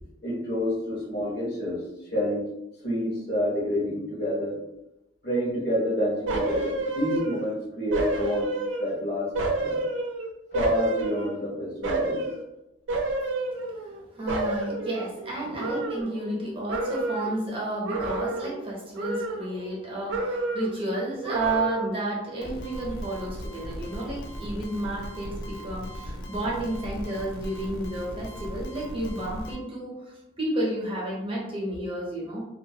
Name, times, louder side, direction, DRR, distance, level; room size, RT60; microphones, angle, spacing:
voice 1, 0.2-1.8 2.1-2.5 2.8-4.6 5.2-8.5 8.8-9.3 9.6-9.8 10.5-12.2, equal, 55° left, -3 dB, 0.8 m, -28 dB
sound 1, 6.3-7.5 7.9-9.0 9.4-11.5 11.8-12.4 12.9-14.0 14.3-16.4 16.7-17.4 17.8-18.7 19.0-19.8 20.1-20.8 21.2-22.1 22.4-22.5, right 2 dB, 75° right, 0.4 m, -30 dB
voice 2, 13.5-32.5, right 1 dB, 30° right, -3 dB, 0.7 m, -31 dB
sound 2, 22.4-29.6, equal, 85° left, 0.4 m, -38 dB
2.5 x 2.2 x 2.7 m, 0.90 s
head